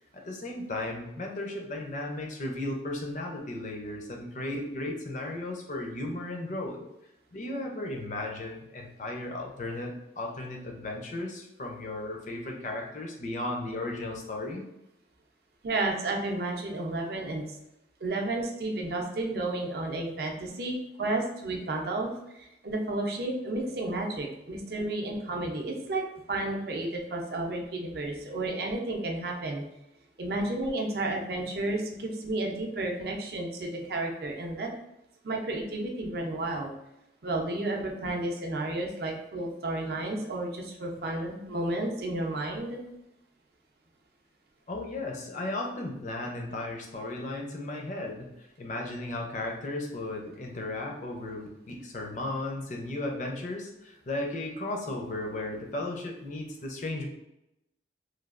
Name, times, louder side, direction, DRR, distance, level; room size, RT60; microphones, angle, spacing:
voice 1, 0.1-6.8 7.3-14.6 44.7-57.0, left 2 dB, 45° left, 1 dB, 0.5 m, -35 dB
voice 2, 15.6-17.4 18.0-22.1 22.4-26.0 26.3-29.6 30.2-34.7 35.2-36.7 37.2-42.8, right 2 dB, 55° right, 1 dB, 0.5 m, -32 dB
3.2 x 2.3 x 2.4 m, 0.87 s
head